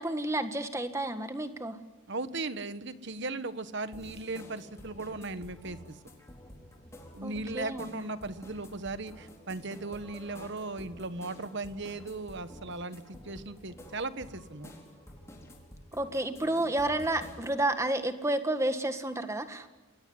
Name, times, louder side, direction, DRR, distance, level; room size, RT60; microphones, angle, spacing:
voice 1, 0.0-1.8 7.2-8.0 15.9-19.7, right 1 dB, 15° right, 8 dB, 1.7 m, -31 dB
voice 2, 2.1-6.0 7.1-14.7, right 3 dB, 50° right, 12 dB, 1.3 m, -37 dB
sound 1, 3.9-17.6, left 1 dB, 15° left, 4.3 m, -50 dB
29.0 x 21.5 x 9.7 m, 1.1 s
head